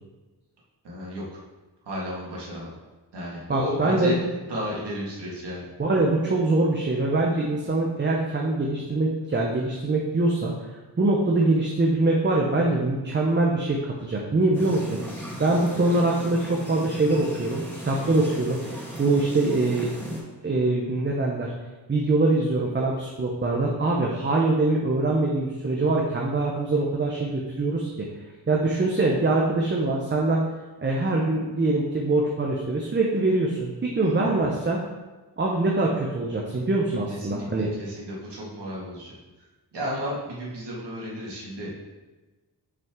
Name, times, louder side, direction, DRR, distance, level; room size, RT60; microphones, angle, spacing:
voice 1, 0.8-1.4 1.8-2.7 3.1-5.7 34.0-34.1 37.1-39.1 39.7-41.7, equal, 90° right, -5 dB, 2.0 m, -33 dB
voice 2, 3.5-4.2 5.8-10.7 11.0-19.9 20.4-21.5 21.9-28.1 28.5-30.5 30.8-34.8 35.4-37.7, right 2 dB, 30° right, -2 dB, 0.7 m, -23 dB
sound 1, 14.5-20.2, equal, 5° left, 2.0 m, -37 dB
6.0 x 5.8 x 3.7 m, 1.2 s
wide cardioid pair, 130°, 40 cm